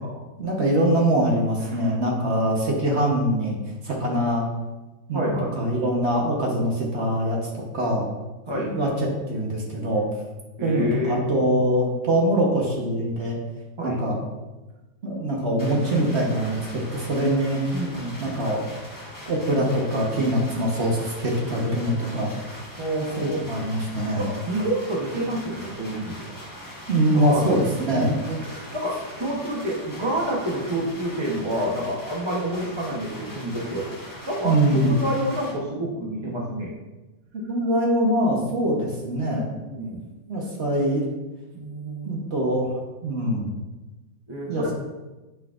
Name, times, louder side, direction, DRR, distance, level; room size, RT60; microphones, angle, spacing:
voice 1, 0.4-3.6 3.8-4.5 5.1-8.1 8.7-10.0 10.6-13.4 13.8-14.2 15.0-17.6 18.2-18.6 19.3-22.3 23.2-24.2 26.9-28.1 34.4-34.9 37.5-39.5 40.3-41.0 42.0-43.5 44.5-44.7, right 1 dB, 45° right, -1 dB, 1.1 m, -23 dB
voice 2, 5.1-5.5 8.5-8.8 10.6-11.2 13.8-14.0 17.7-18.4 22.8-23.4 24.2-26.3 27.1-33.9 34.3-36.7 39.6-40.1 41.5-42.2 44.3-44.7, right 1 dB, 30° right, -2 dB, 0.5 m, -28 dB
sound 1, 15.6-35.5, equal, 15° left, 0.8 m, -41 dB
7.6 x 5.9 x 2.5 m, 1.1 s
omnidirectional pair, 2.0 m